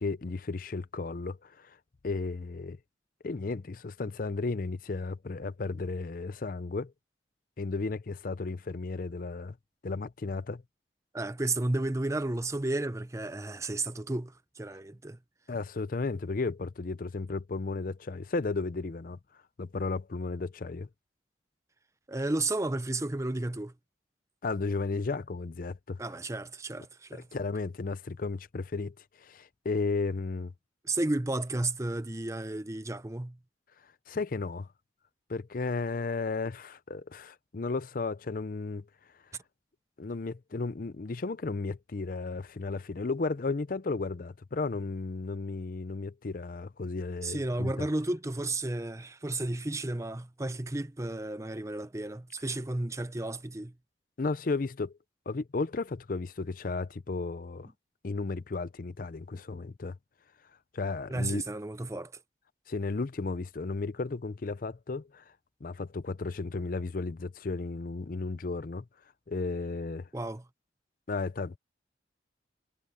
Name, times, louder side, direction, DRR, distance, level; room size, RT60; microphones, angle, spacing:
voice 1, 0.0-1.8 2.0-2.8 3.2-6.9 7.6-9.6 9.8-10.6 15.5-19.2 19.6-20.9 24.4-26.0 27.1-30.5 34.1-34.7 35.3-38.9 40.0-47.9 54.2-55.0 55.3-57.7 58.0-60.0 60.7-61.4 62.7-65.2 65.6-68.8 69.3-70.1 71.1-71.6, left 3 dB, 50° left, 0.5 m, -34 dB
voice 2, 11.1-15.2 22.1-23.7 26.0-27.3 30.8-33.4 47.2-53.7 61.1-62.1 70.1-70.4, right 2 dB, 15° right, 0.6 m, -33 dB
head